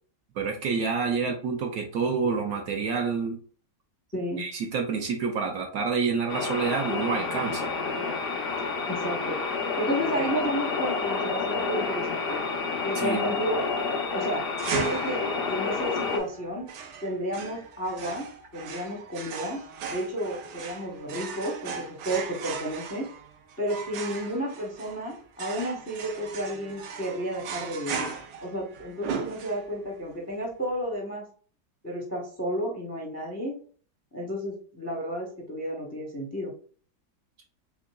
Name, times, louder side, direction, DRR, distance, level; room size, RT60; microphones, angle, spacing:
voice 1, 0.4-3.4 4.4-7.7 13.0-13.3, right 5 dB, 70° right, 2 dB, 0.9 m, -28 dB
voice 2, 4.1-4.4 8.9-9.4 9.8-12.4 12.8-13.6 14.1-15.2 15.5-16.7 17.0-18.3 18.5-19.6 19.9-23.1 23.6-28.1 28.4-31.2 31.8-33.6 34.1-36.5, equal, 15° left, -2 dB, 0.5 m, -32 dB
sound 1, 6.3-16.2, left 4 dB, 85° left, 0.5 m, -29 dB
sound 2, 14.6-29.9, right 6 dB, 85° right, 1.3 m, -37 dB
3.7 x 3.5 x 2.2 m, 0.43 s
omnidirectional pair, 1.9 m